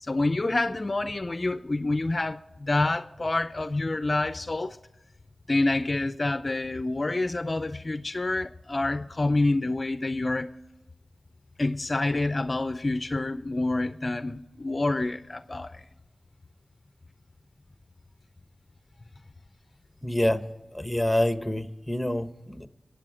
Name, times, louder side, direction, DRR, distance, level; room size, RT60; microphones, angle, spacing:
voice 1, 0.0-4.8 5.5-10.5 11.6-15.8, left 2 dB, 45° left, 0.5 m, -27 dB
voice 2, 20.0-20.4 20.7-22.7, left 1 dB, 5° left, 1.2 m, -27 dB
22.5 x 8.2 x 5.0 m
cardioid pair, 45°, 0 cm